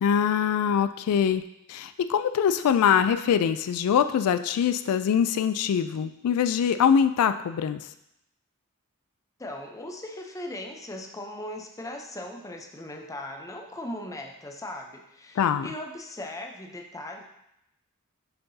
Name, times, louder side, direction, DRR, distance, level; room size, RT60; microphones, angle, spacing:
voice 1, 0.0-1.4 1.7-7.8 15.4-15.7, left 8 dB, 80° left, 10 dB, 0.3 m, -23 dB
voice 2, 9.4-17.2, left 1 dB, 15° left, 2 dB, 0.6 m, -38 dB
6.7 x 5.7 x 2.7 m, 0.82 s
head